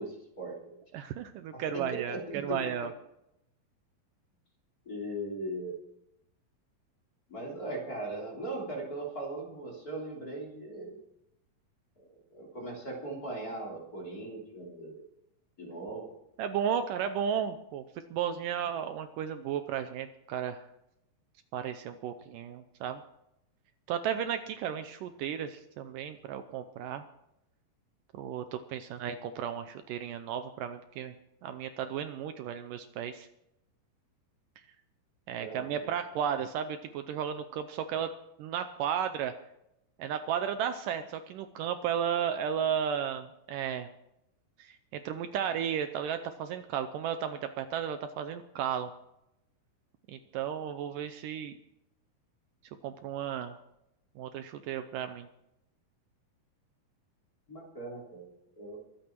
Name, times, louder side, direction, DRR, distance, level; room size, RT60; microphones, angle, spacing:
voice 1, 0.0-0.8 1.5-2.7 4.8-5.8 7.3-11.0 12.3-15.0 15.6-16.2 35.4-35.9 57.5-58.3 58.6-58.8, right 1 dB, 25° left, -2 dB, 3.3 m, -39 dB
voice 2, 0.9-2.9 16.4-17.8 18.1-20.6 21.5-23.0 23.9-27.0 28.1-31.2 31.4-33.3 35.3-38.1 38.4-39.3 40.0-43.9 44.6-48.9 50.1-51.5 52.8-53.6 54.2-55.3, right 8 dB, 80° right, 9 dB, 2.2 m, -34 dB
23.5 x 8.9 x 4.6 m, 0.83 s
omnidirectional pair, 4.2 m